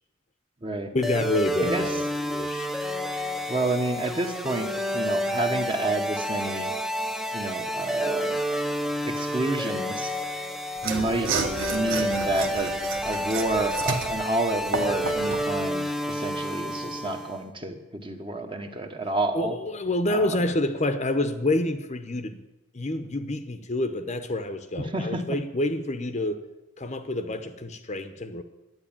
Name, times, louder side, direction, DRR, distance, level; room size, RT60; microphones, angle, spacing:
voice 1, 0.9-2.0 2.3-2.7 19.3-22.4 22.7-26.4 26.8-28.4, left 1 dB, 35° left, 9 dB, 0.8 m, -28 dB
sound 1, 1.0-17.4, equal, ahead, 0.7 m, -30 dB
voice 2, 1.6-2.0 3.5-6.7 7.3-8.4 9.0-10.1 10.8-11.3 11.7-12.7 13.0-19.5 20.1-20.4 24.8-25.4, right 2 dB, 25° right, 5 dB, 1.2 m, -29 dB
Mechanisms / Sawing, 10.8-15.5, right 4 dB, 90° right, 1.3 m, -31 dB
11.0 x 9.5 x 8.8 m, 0.99 s
head